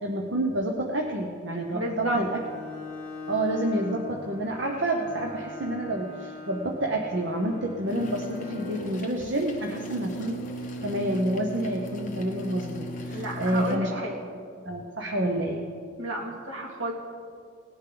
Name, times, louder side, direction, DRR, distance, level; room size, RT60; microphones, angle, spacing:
voice 1, 0.0-2.4 3.3-10.4 10.8-14.1 14.7-15.6, right 1 dB, 60° right, 1 dB, 0.9 m, -28 dB
voice 2, 1.7-2.2 13.1-14.2 16.0-16.9, right 1 dB, 75° right, -2 dB, 2.4 m, -32 dB
Bowed string instrument, 1.9-9.0, left 2 dB, 10° left, 3.0 m, -41 dB
sound 1, 7.9-13.8, equal, 40° left, 1.1 m, -37 dB
18.5 x 10.0 x 3.9 m, 2.2 s
head